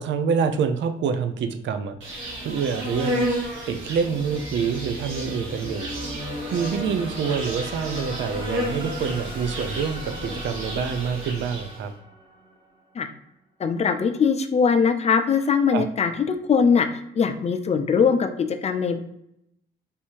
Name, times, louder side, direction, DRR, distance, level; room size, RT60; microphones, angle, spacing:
voice 1, 0.0-2.0 2.4-5.9 6.5-11.9 15.7-15.8, right 6 dB, 65° right, 8 dB, 0.5 m, -26 dB
Insect, 2.0-11.8, equal, 85° right, 1.5 m, -32 dB
sound 1, 2.8-13.0, equal, 25° right, 1.3 m, -40 dB
voice 2, 13.6-19.0, left 6 dB, 35° left, 8 dB, 0.5 m, -21 dB
3.5 x 2.7 x 4.4 m, 0.77 s
cardioid pair, 90°, 20 cm